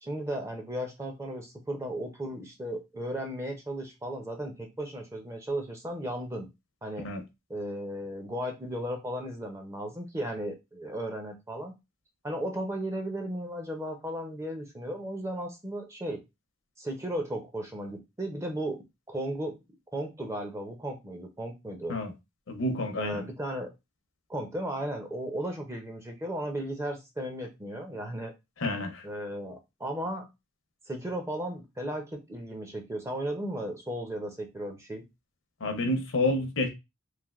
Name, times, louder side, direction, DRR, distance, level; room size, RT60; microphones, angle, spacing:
voice 1, 0.0-6.5 6.8-7.1 7.5-11.7 12.2-16.2 16.8-19.6 19.9-21.9 23.0-23.7 24.3-28.3 29.0-30.3 30.9-35.0, right 1 dB, 15° right, 0.5 m, -35 dB
voice 2, 22.5-23.3 28.6-29.1 35.6-36.7, left 2 dB, 75° left, 0.6 m, -29 dB
3.2 x 2.5 x 2.4 m
head